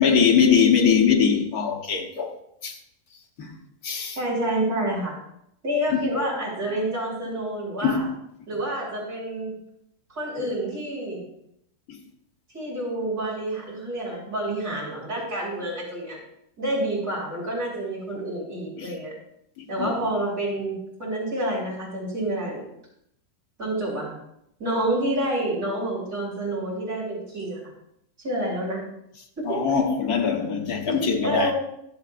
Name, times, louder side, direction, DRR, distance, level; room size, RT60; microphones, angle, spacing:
voice 1, 0.0-2.3 2.6-2.8 3.4-3.5 3.8-4.2 5.9-6.1 7.8-8.1 11.9-12.0 18.8-18.9 19.6-19.9 29.4-31.5, left 7 dB, 70° left, 1.7 m, -22 dB
voice 2, 4.2-5.2 5.6-8.1 8.5-9.5 10.1-11.2 12.5-16.2 16.6-19.1 19.7-22.6 23.6-24.2 24.6-27.7 28.2-28.8 29.4-29.6 30.9-31.5, right 1 dB, 65° right, 6.0 m, -28 dB
23.5 x 8.0 x 2.5 m
omnidirectional pair, 1.7 m